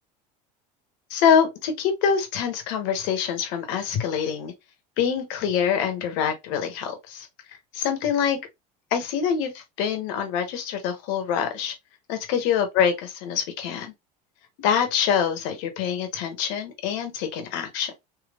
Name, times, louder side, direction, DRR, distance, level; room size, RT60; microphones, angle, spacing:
voice 1, 1.1-4.5 5.0-7.3 7.7-8.4 8.9-11.7 12.1-13.9 14.6-17.9, left 7 dB, 70° left, 1.2 m, -25 dB
3.4 x 2.8 x 2.4 m
supercardioid pair, 95°, 21 cm